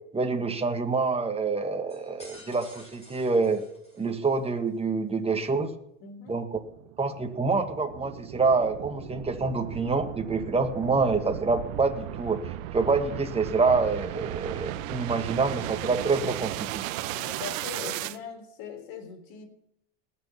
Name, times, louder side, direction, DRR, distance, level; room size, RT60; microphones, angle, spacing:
voice 1, 0.1-3.6 4.0-5.7 6.3-6.5 7.0-16.8, right 4 dB, 15° right, 5 dB, 1.8 m, -26 dB
sound 1, 1.9-4.4, left 1 dB, 15° left, 6.3 m, -51 dB
voice 2, 6.0-6.4 17.0-19.5, left 6 dB, 60° left, 5 dB, 3.7 m, -40 dB
sound 2, 6.7-18.2, right 14 dB, 80° right, 0.9 m, -36 dB
19.0 x 6.8 x 5.7 m, 0.78 s
supercardioid pair, 100°, 39 cm